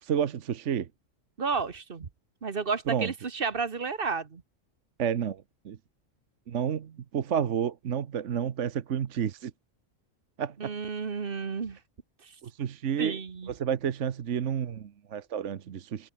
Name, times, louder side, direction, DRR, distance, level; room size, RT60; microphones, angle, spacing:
voice 1, 0.0-0.9 2.9-3.1 5.0-5.8 6.5-9.5 10.4-10.7 12.4-13.2 13.5-16.1, right 8 dB, 70° right, 1.3 m, -30 dB
voice 2, 1.4-2.1 2.4-4.4 10.6-11.8 12.2-12.3 13.0-13.5, right 5 dB, 45° right, 1.4 m, -32 dB
omnidirectional pair, 1.3 m